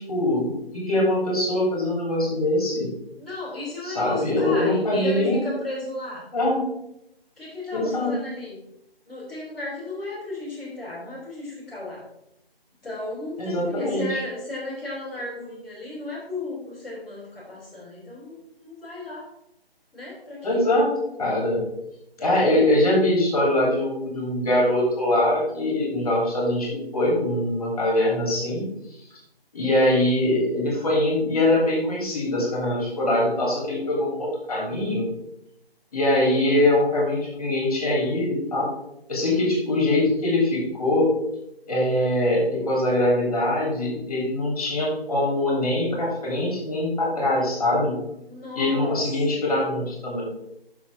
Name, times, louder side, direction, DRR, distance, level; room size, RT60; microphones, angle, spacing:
voice 1, 0.0-2.9 3.9-5.4 6.3-6.6 7.7-8.1 13.4-14.2 20.4-20.9 21.2-21.6 22.2-28.6 29.5-35.1 35.9-38.7 39.1-41.1 41.7-48.0 48.5-50.2, left 1 dB, 40° left, -3 dB, 2.9 m, -23 dB
voice 2, 3.2-6.3 7.4-8.6 9.0-12.0 12.8-19.3 19.9-20.6 48.3-49.4, left 2 dB, ahead, -17 dB, 2.1 m, -34 dB
7.2 x 6.3 x 4.7 m, 0.82 s
figure-of-eight pair, 155°, 31 cm